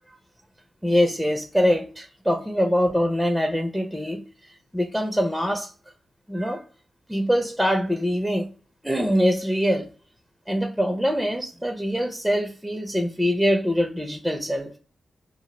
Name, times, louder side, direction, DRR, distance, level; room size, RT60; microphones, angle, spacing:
voice 1, 0.8-5.7 6.3-6.6 7.1-8.5 8.8-9.9 10.5-14.7, equal, ahead, 0.5 m, -24 dB
2.1 x 2.0 x 3.0 m
cardioid pair, 50°, 0 cm